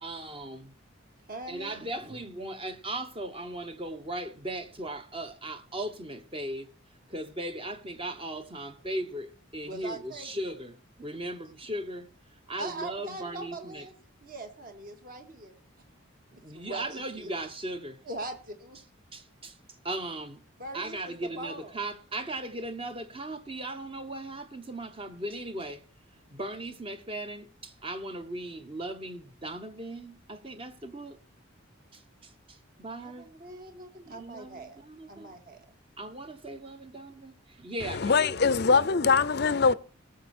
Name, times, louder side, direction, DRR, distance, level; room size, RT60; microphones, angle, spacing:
voice 1, 0.0-0.8 1.5-6.7 7.1-12.1 12.5-13.9 16.3-18.0 19.1-19.6 19.8-20.4 20.7-25.8 26.3-31.2 31.9-33.3 34.1-35.4 36.0-39.1, right 1 dB, 25° right, 1.1 m, -38 dB
voice 2, 1.3-1.7 9.7-10.5 12.6-13.9 14.2-15.5 16.5-17.3 18.1-18.8 20.6-21.8 33.0-35.7, right 2 dB, 40° right, 2.1 m, -41 dB
voice 3, 37.8-39.7, left 5 dB, 50° left, 0.5 m, -23 dB
19.0 x 7.2 x 4.4 m
head